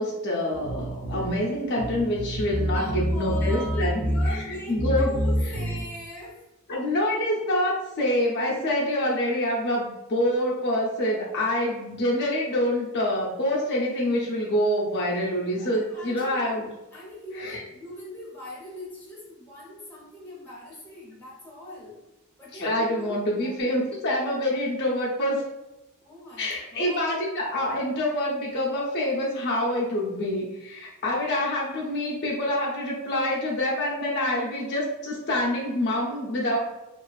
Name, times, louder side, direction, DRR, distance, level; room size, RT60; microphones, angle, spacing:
voice 1, 0.0-4.0 4.7-5.1 5.4-5.5 6.7-16.7 17.4-17.6 22.5-25.4 26.4-36.6, left 1 dB, 50° left, -4 dB, 0.5 m, -26 dB
sound 1, 0.5-5.8, equal, 30° right, 0.3 m, -28 dB
voice 2, 2.7-6.4 15.6-22.0 22.4-24.0 26.0-27.4, left 1 dB, 10° left, -7 dB, 0.7 m, -41 dB
2.4 x 2.3 x 2.3 m, 0.99 s
head